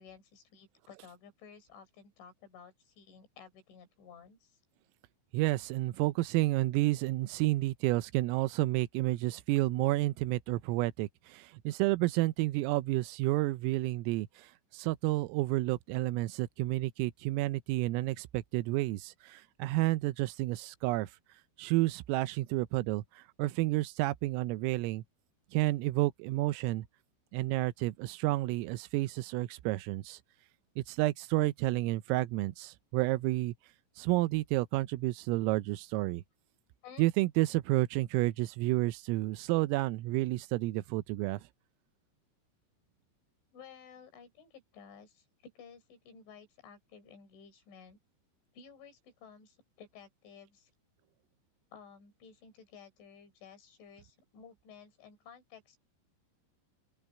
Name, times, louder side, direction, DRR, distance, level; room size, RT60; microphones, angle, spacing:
voice 1, 0.0-4.6 36.8-37.1 43.5-48.0 48.5-50.7 51.7-55.8, left 6 dB, 65° left, 7.0 m, -54 dB
voice 2, 5.3-14.3 14.7-21.1 21.6-23.0 23.4-25.0 25.5-26.9 27.3-30.2 30.8-33.6 34.0-36.2 37.0-41.4, right 18 dB, 90° right, 3.5 m, -30 dB
omnidirectional pair, 5.8 m